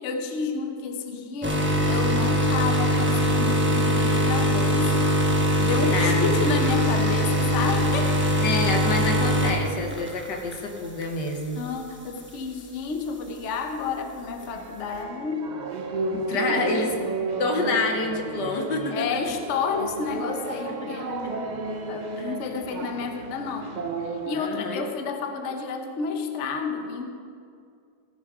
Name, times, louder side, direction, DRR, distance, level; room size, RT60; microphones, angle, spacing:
voice 1, 0.0-5.0 5.6-8.2 11.5-15.5 16.3-16.9 18.9-23.7 24.3-27.1, left 5 dB, 50° left, 5 dB, 1.0 m, -30 dB
sound 1, 1.4-10.6 11.0-11.3 12.2-12.3, equal, 10° right, 0.8 m, -22 dB
voice 2, 5.9-6.4 8.4-11.6 16.1-16.9 17.4-19.4 20.7-20.8 22.2-22.4 24.3-24.8, left 3 dB, 75° left, 3 dB, 1.8 m, -28 dB
sound 2, 14.4-24.4, right 3 dB, 80° right, 0.4 m, -32 dB
16.0 x 7.2 x 4.9 m, 2.3 s
omnidirectional pair, 1.9 m